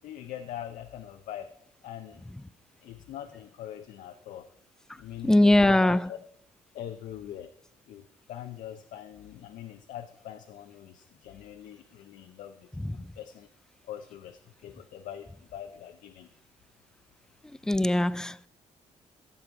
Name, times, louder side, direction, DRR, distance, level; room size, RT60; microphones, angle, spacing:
voice 1, 0.0-1.5 1.8-2.2 2.8-4.5 5.0-6.2 6.7-7.5 7.9-8.0 8.3-13.5 13.8-16.3, left 11 dB, 85° left, 0.7 m, -42 dB
voice 2, 5.2-6.0 12.8-12.9 17.7-18.5, left 1 dB, 5° left, 0.3 m, -21 dB
15.0 x 7.0 x 4.6 m
cardioid pair, 110°, 13 cm